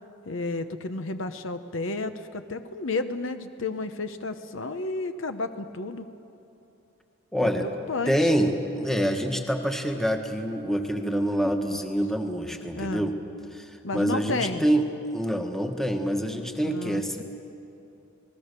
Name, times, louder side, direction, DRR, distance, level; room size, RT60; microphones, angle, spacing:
voice 1, 0.2-6.0 7.6-8.3 12.7-13.1 13.8-14.7 16.6-17.2, left 3 dB, 65° left, 9 dB, 0.9 m, -32 dB
voice 2, 7.3-7.7 8.1-13.1 13.5-17.2, equal, ahead, 4 dB, 1.4 m, -26 dB
29.0 x 19.5 x 6.8 m, 2.8 s
head